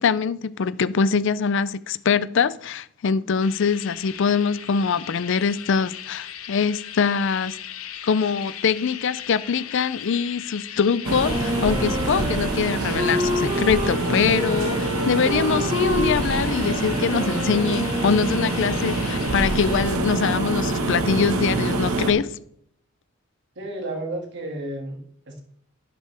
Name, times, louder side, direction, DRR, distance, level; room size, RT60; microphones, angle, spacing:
voice 1, 0.0-7.6 8.0-22.3, left 6 dB, 55° left, 0.4 m, -23 dB
sound 1, 3.4-19.8, left 10 dB, 75° left, 0.9 m, -39 dB
sound 2, 11.0-22.1, right 2 dB, 85° right, 1.6 m, -25 dB
Wind instrument woodwind instrument, 11.2-18.9, left 1 dB, 25° right, 1.4 m, -29 dB
voice 2, 23.6-25.4, right 1 dB, 55° right, 2.1 m, -32 dB
11.5 x 11.0 x 3.4 m
head